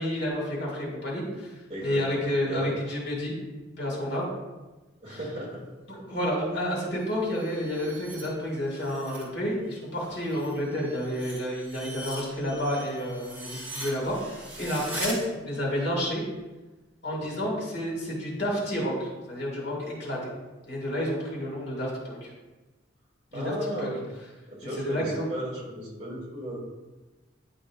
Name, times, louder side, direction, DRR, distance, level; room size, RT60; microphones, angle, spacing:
voice 1, 0.0-1.5 1.8-3.4 3.8-4.3 5.1-5.2 6.1-14.2 14.6-16.2 17.0-20.2 20.7-22.3 23.3-23.5 23.8-23.9 24.8-25.2, equal, 60° left, -3 dB, 2.1 m, -30 dB
voice 2, 1.7-2.7 5.0-5.6 5.9-6.0 17.2-17.3 23.3-24.0 24.5-26.6, right 1 dB, 35° right, -5 dB, 2.1 m, -36 dB
sound 1, 6.9-9.3 9.6-15.2, right 1 dB, 10° right, 1.7 m, -41 dB
10.0 x 5.3 x 2.4 m, 1.1 s
head